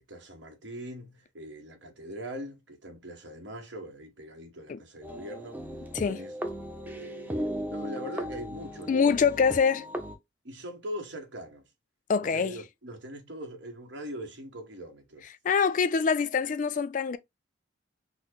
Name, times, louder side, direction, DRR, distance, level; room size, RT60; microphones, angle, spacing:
voice 1, 0.0-5.6 6.1-6.3 6.8-9.2 10.4-11.6 12.2-15.2, equal, 75° right, 1.0 m, -41 dB
sound 1, 5.0-10.2, equal, 10° right, 0.5 m, -37 dB
voice 2, 8.9-9.9 12.1-12.6 15.4-17.2, left 6 dB, 45° left, 0.3 m, -24 dB
3.9 x 2.0 x 3.0 m
head